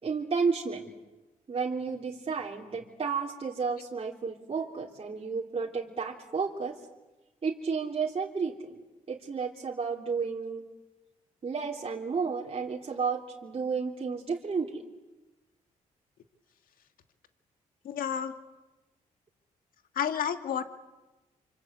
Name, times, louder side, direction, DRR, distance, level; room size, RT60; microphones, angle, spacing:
voice 1, 0.0-0.9 1.5-6.8 7.4-8.8 9.1-10.6 11.4-14.8, right 5 dB, 40° right, -1 dB, 3.3 m, -32 dB
voice 2, 17.8-18.3 20.0-20.6, left 8 dB, 80° left, 9 dB, 2.1 m, -30 dB
27.5 x 26.0 x 8.2 m, 1.1 s
cardioid pair, 65°, 14 cm